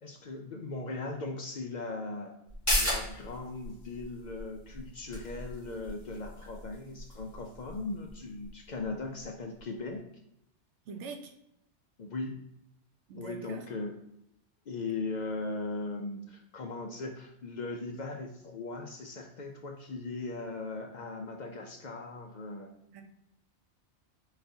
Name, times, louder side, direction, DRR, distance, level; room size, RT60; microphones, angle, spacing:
voice 1, 0.0-2.3 2.8-10.0 12.0-12.4 13.1-13.9 14.7-22.7, left 3 dB, 60° left, 3 dB, 0.4 m, -38 dB
sound 1, 2.5-9.6 9.9-10.0, equal, 15° left, 1.8 m, -37 dB
voice 2, 10.9-11.3 13.1-13.6 22.9-23.0, right 4 dB, 80° right, 5 dB, 1.0 m, -43 dB
4.6 x 3.9 x 2.7 m, 0.79 s
omnidirectional pair, 1.2 m